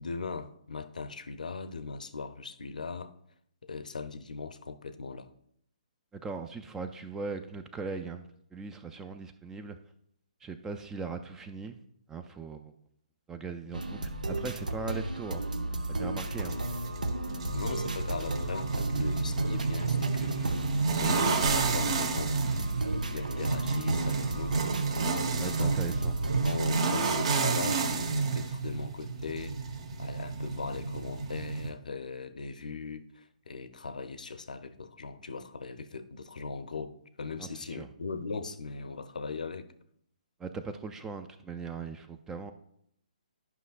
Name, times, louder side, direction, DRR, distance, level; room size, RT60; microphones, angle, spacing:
voice 1, 0.0-3.1 3.6-5.3 17.5-24.6 25.4-26.1 26.4-29.6 30.0-39.7, left 4 dB, 75° left, 11 dB, 0.7 m, -39 dB
voice 2, 6.1-9.8 10.4-11.8 12.1-12.7 13.3-15.4 15.9-16.6 25.4-26.3 37.4-37.9 40.4-42.5, right 4 dB, 10° right, 8 dB, 0.4 m, -39 dB
sound 1, 13.7-26.6, right 2 dB, 80° right, 0.7 m, -34 dB
sound 2, 16.2-31.7, right 4 dB, 50° right, 1.1 m, -31 dB
11.0 x 5.7 x 2.4 m, 0.71 s
figure-of-eight pair, 140°, 4 cm